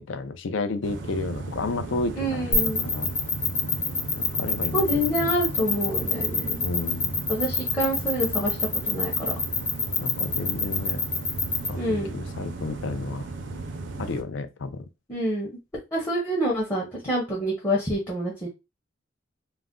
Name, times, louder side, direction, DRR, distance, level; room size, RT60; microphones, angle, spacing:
voice 1, 0.0-3.1 4.2-5.3 6.6-7.2 10.0-11.0 11.7-13.3 14.0-14.8, left 3 dB, 80° left, 0.4 m, -32 dB
sound 1, 0.8-14.2, right 3 dB, 70° right, 0.5 m, -36 dB
voice 2, 2.2-2.9 4.7-6.6 7.3-8.6 8.8-9.3 11.8-12.1 15.1-15.5 15.9-18.5, equal, 15° left, 0.6 m, -27 dB
sound 2, 2.5-11.7, left 6 dB, 50° left, 1.0 m, -26 dB
2.4 x 2.1 x 3.6 m
head